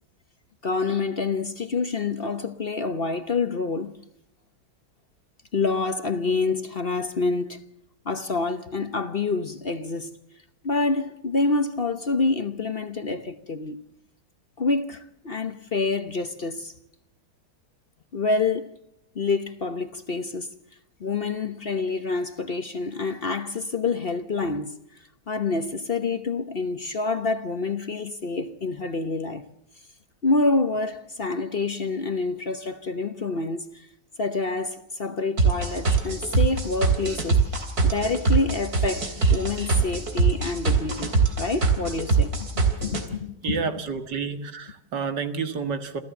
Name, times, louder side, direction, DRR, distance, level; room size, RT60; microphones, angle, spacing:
voice 1, 0.6-3.9 5.5-7.6 8.0-10.2 10.6-13.8 14.6-16.7 18.1-18.8 19.1-20.5 21.0-24.8 25.3-29.5 30.2-33.9 34.2-42.5 42.8-43.6, left 3 dB, 40° left, 1.0 m, -27 dB
sound 1, 35.4-43.0, right 4 dB, 60° right, 3.7 m, -22 dB
voice 2, 43.4-46.0, right 5 dB, 85° right, 2.4 m, -29 dB
28.0 x 14.5 x 7.1 m
omnidirectional pair, 1.8 m